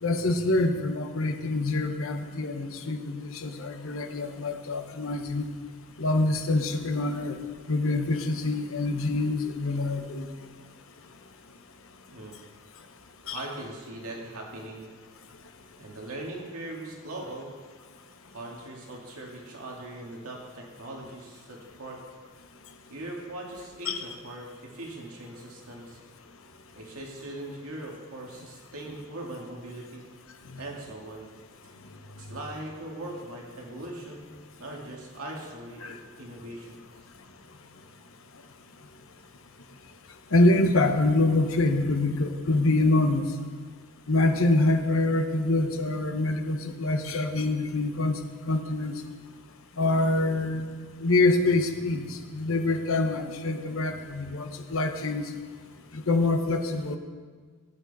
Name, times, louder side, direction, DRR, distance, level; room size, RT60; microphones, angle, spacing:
voice 1, 0.0-5.5 6.0-7.4 7.7-10.2 13.3-13.4 23.9-24.0 35.8-35.9 40.3-43.3 44.1-48.2 48.5-49.0 49.8-50.7 51.0-55.3 55.9-57.0, left 2 dB, 70° left, 6 dB, 1.0 m, -25 dB
voice 2, 12.1-12.4 13.3-14.9 15.8-17.5 18.3-22.0 22.9-26.0 26.7-30.1 30.6-31.3 31.6-31.7 32.2-36.8, right 1 dB, 80° right, -1 dB, 2.2 m, -40 dB
14.5 x 9.0 x 4.2 m, 1.5 s
head